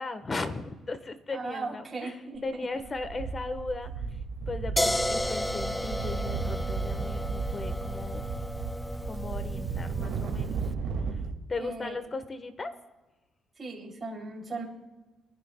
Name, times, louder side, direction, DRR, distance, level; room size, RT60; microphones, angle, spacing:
voice 1, 0.0-3.9 4.5-8.2 9.1-10.6 11.1-11.2 11.5-12.7, left 3 dB, 30° left, 10 dB, 1.2 m, -37 dB
voice 2, 1.3-2.7 11.5-12.0 13.6-14.6, right 3 dB, 35° right, -2 dB, 3.0 m, -37 dB
sound 1, 2.4-2.5 2.8-11.3, right 5 dB, 75° right, 2.1 m, -34 dB
sound 2, 4.8-10.6, left 1 dB, 10° left, 0.4 m, -33 dB
26.0 x 10.5 x 2.3 m, 1.2 s
cardioid pair, 90°, 0 cm